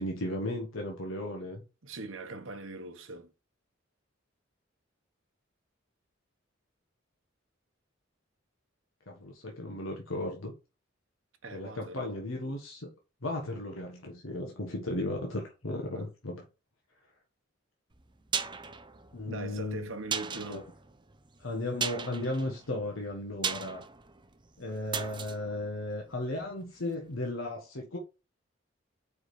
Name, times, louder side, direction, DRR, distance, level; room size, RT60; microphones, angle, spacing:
voice 1, 0.0-1.6 9.1-10.5 11.5-12.9 13.2-16.4 19.1-19.9 20.5-20.6 21.4-23.8 24.6-28.0, left 1 dB, 90° left, 1.3 m, -35 dB
voice 2, 1.8-3.3 11.4-12.2 15.9-16.1 19.3-20.7, right 2 dB, 75° right, 1.3 m, -41 dB
sound 1, 17.9-26.8 27.1-27.2, right 6 dB, 25° right, 0.6 m, -38 dB
4.9 x 4.9 x 4.9 m
head